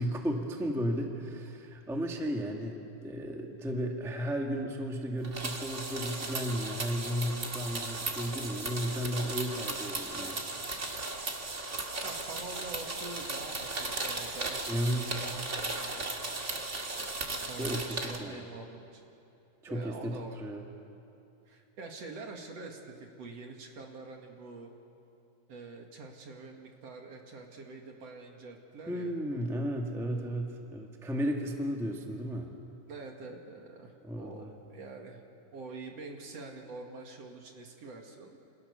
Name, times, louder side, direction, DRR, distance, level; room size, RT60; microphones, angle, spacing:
voice 1, 0.0-10.4 14.7-15.2 17.6-18.4 19.6-20.6 28.9-32.5 34.0-34.5, equal, ahead, 1 dB, 1.3 m, -34 dB
sound 1, 5.2-18.2, right 2 dB, 25° right, 1.9 m, -36 dB
voice 2, 12.0-16.1 17.5-19.0 19.7-20.4 21.5-24.7 25.5-29.1 30.1-30.5 32.9-34.4 34.7-35.2 35.5-38.4, right 3 dB, 55° right, 2 dB, 3.0 m, -46 dB
28.0 x 27.0 x 7.0 m, 2.7 s
omnidirectional pair, 3.6 m